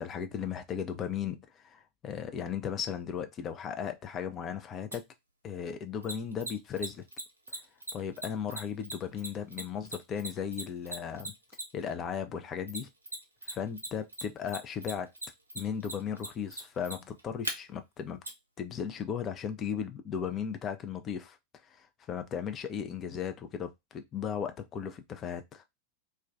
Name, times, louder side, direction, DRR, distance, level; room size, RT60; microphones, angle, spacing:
voice 1, 0.0-5.0 5.4-7.0 7.5-7.6 7.9-11.3 11.7-12.9 13.4-15.1 15.5-18.2 18.6-21.4 21.7-25.6, left 8 dB, 30° left, 0.4 m, -36 dB
Mechanisms, 4.9-5.0 6.0-11.9 12.7-13.5 13.8-17.5 18.2-18.3, right 1 dB, 80° right, 0.5 m, -38 dB
2.3 x 2.2 x 2.5 m
figure-of-eight pair, 90°, 0 cm